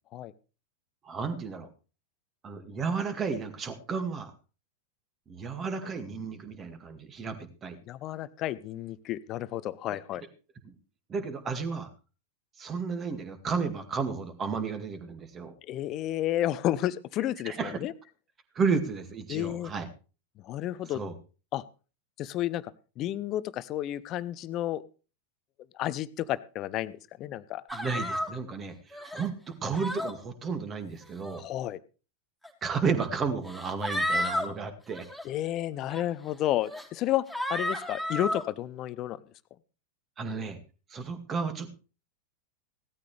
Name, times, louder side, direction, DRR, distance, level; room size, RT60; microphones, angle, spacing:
voice 1, 1.0-1.7 2.4-4.3 5.3-7.8 9.9-10.0 10.6-10.7 11.1-11.9 12.6-15.5 17.4-17.7 18.5-19.9 20.9-21.1 27.7-31.4 32.6-35.1 40.2-40.6 40.9-41.7, right 5 dB, 25° right, 8 dB, 2.1 m, -32 dB
voice 2, 7.9-10.2 15.7-17.9 19.3-19.7 20.4-21.0 21.5-21.6 22.2-24.8 25.7-27.6 31.4-31.8 35.2-39.2, left 13 dB, 35° left, 17 dB, 0.7 m, -31 dB
sound 1, 27.7-28.3 28.9-29.3 29.7-30.1 31.0-31.4 32.4-32.5 33.4-34.5 34.9-35.2 35.9-36.0 36.6-36.9 37.3-38.4, equal, 5° right, 3.2 m, -32 dB
17.0 x 13.0 x 3.3 m, 0.36 s
figure-of-eight pair, 90°, 0 cm